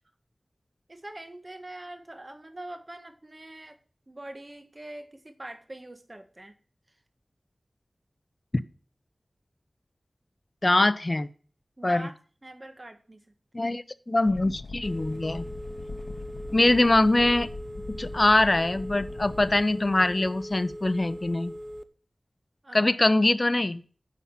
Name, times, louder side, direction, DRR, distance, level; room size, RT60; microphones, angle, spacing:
voice 1, 0.9-3.7 4.1-6.5 11.8-13.2 13.6-13.7 22.6-23.0, right 1 dB, 35° right, 8 dB, 1.6 m, -43 dB
voice 2, 10.6-11.3 11.8-12.1 13.5-15.5 16.5-17.5 17.9-21.5 22.7-23.8, left 2 dB, 40° left, 14 dB, 0.7 m, -23 dB
sound 1, 14.3-19.6, left 3 dB, 90° left, 0.7 m, -41 dB
Telephone, 14.8-21.8, equal, 10° right, 0.8 m, -40 dB
9.8 x 5.7 x 7.5 m, 0.41 s
wide cardioid pair, 60°, 0 cm